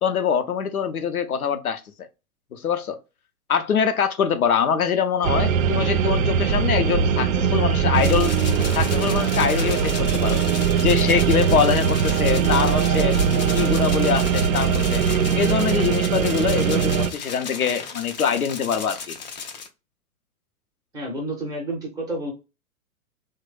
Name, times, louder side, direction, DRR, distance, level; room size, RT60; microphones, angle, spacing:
voice 1, 0.0-2.1 2.5-3.0 3.5-8.4 8.7-10.4 10.8-13.2 13.5-15.0 15.3-19.2, left 7 dB, 80° left, 0.6 m, -24 dB
sound 1, 5.2-17.1, right 7 dB, 65° right, 0.5 m, -21 dB
sound 2, 7.9-19.7, left 5 dB, 35° left, 0.4 m, -35 dB
voice 2, 20.9-22.3, right 1 dB, 10° right, 0.6 m, -30 dB
3.0 x 2.1 x 3.1 m
figure-of-eight pair, 115°, 43 cm